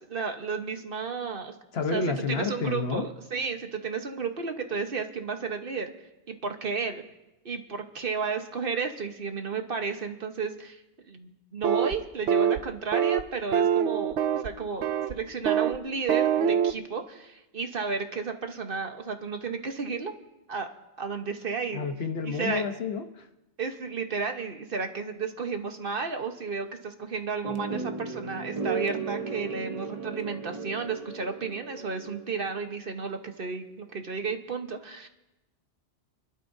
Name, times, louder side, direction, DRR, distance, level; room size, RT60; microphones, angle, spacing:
voice 1, 0.0-1.5 1.9-2.0 2.3-5.9 6.3-7.0 7.4-20.1 20.5-20.7 21.0-21.9 22.2-22.7 23.6-35.1, right 5 dB, 55° right, 5 dB, 1.2 m, -33 dB
voice 2, 1.7-3.1 21.7-23.3, left 4 dB, 65° left, 6 dB, 1.1 m, -30 dB
sound 1, 11.6-12.0 12.3-12.6 12.9-13.2 13.5-14.5 14.8-15.1 15.5-15.8 16.1-16.7, right 8 dB, 90° right, 1.0 m, -24 dB
sound 2, 27.4-32.6, right 5 dB, 35° right, 0.8 m, -35 dB
26.5 x 12.0 x 2.7 m, 0.94 s
omnidirectional pair, 1.2 m